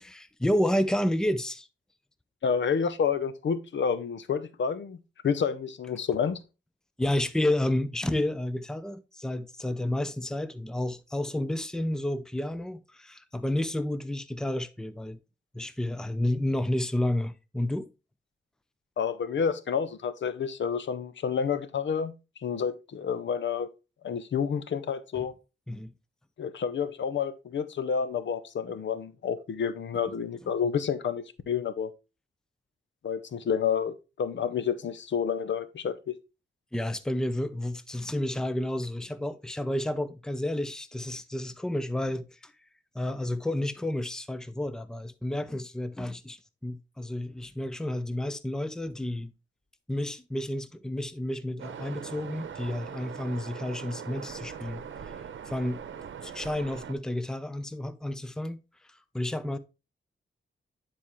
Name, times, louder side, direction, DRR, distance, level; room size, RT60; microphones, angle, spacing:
voice 1, 0.0-1.7 7.0-15.2 15.5-17.9 25.2-25.3 25.7-25.9 36.7-42.5 42.9-49.3 49.9-55.1 55.5-55.8 56.2-58.6 58.9-59.6, left 1 dB, 5° left, 0.6 m, -31 dB
voice 2, 2.4-5.0 5.2-6.4 19.0-22.1 22.4-23.7 24.0-25.3 26.4-31.9 33.0-36.1, left 7 dB, 70° left, 0.7 m, -29 dB
Waves surf, 51.6-56.9, right 7 dB, 90° right, 0.8 m, -41 dB
9.5 x 4.3 x 3.1 m
wide cardioid pair, 95°, 19 cm